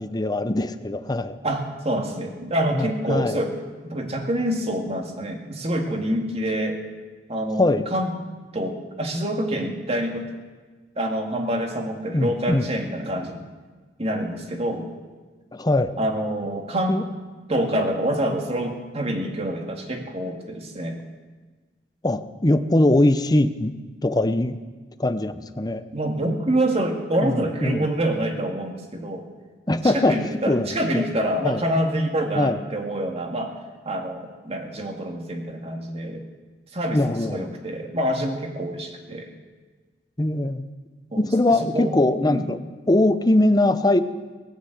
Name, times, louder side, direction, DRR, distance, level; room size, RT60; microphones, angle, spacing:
voice 1, 0.0-1.4 2.7-3.4 7.6-7.9 12.1-12.7 15.5-15.9 16.9-17.0 22.0-23.7 24.0-24.6 25.0-25.8 27.2-27.9 29.7-30.7 30.9-31.0 31.4-31.6 32.4-32.6 36.9-37.5 40.2-40.6 41.2-42.6 42.9-44.0, left 1 dB, 20° left, 11 dB, 0.7 m, -21 dB
voice 2, 1.4-3.5 3.8-6.8 7.3-8.1 8.5-10.3 11.0-13.4 14.0-14.9 16.0-17.0 17.5-21.0 25.9-29.2 29.7-33.5 33.9-36.2 36.7-39.3 41.1-41.3 41.6-42.0 42.2-42.5, right 1 dB, 35° right, 3 dB, 2.1 m, -26 dB
18.5 x 9.7 x 7.9 m, 1.3 s
head